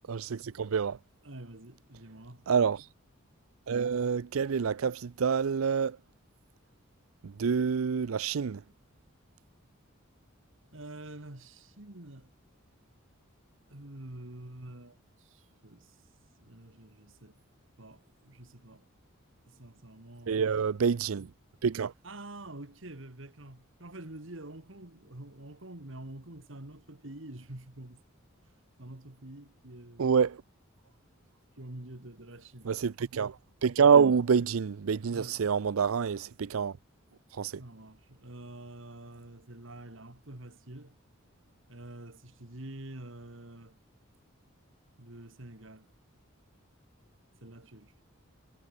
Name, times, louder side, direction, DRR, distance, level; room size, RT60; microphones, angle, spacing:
voice 1, 0.1-1.0 2.5-2.8 3.7-6.0 7.2-8.6 20.3-21.3 21.6-21.9 30.0-30.4 32.7-33.3 33.6-36.7 37.4-37.5, right 6 dB, 85° right, 0.5 m, -27 dB
voice 2, 1.2-2.5 10.7-12.3 13.7-16.1 16.4-17.4 17.8-18.9 19.5-20.5 22.0-28.0 28.4-30.2 31.5-32.7 35.1-35.6 37.6-41.0 41.7-43.8 45.0-45.9 47.4-48.0, right 1 dB, 65° right, 2.4 m, -47 dB
head